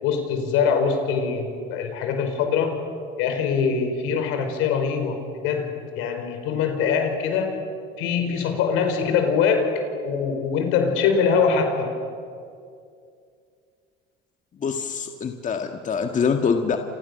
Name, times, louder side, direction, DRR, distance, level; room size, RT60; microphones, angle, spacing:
voice 1, 0.0-2.8 3.2-7.6 8.0-11.9, left 6 dB, 75° left, 6 dB, 5.0 m, -23 dB
voice 2, 14.6-16.8, left 6 dB, 35° left, 5 dB, 1.8 m, -24 dB
30.0 x 28.0 x 6.9 m, 2.3 s
supercardioid pair, 100°, 21 cm